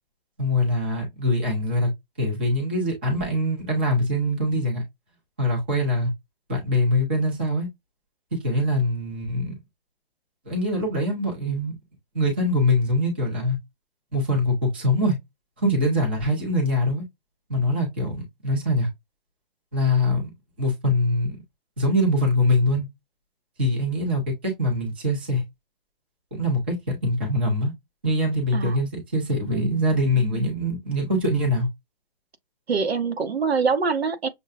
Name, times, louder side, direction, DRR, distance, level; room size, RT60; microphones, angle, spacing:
voice 1, 0.4-1.9 2.2-4.8 5.4-6.1 6.5-7.7 8.3-9.5 10.5-11.7 12.1-13.6 14.1-15.2 15.6-17.0 17.5-18.9 19.7-20.3 20.6-21.4 21.8-22.9 23.6-25.4 26.3-27.7 28.0-31.7, left 1 dB, 10° right, 0.6 m, -23 dB
voice 2, 29.5-29.8 30.1-30.6 32.7-34.3, right 5 dB, 85° right, 1.2 m, -25 dB
6.4 x 2.2 x 2.3 m
hypercardioid pair, 175°, 30 cm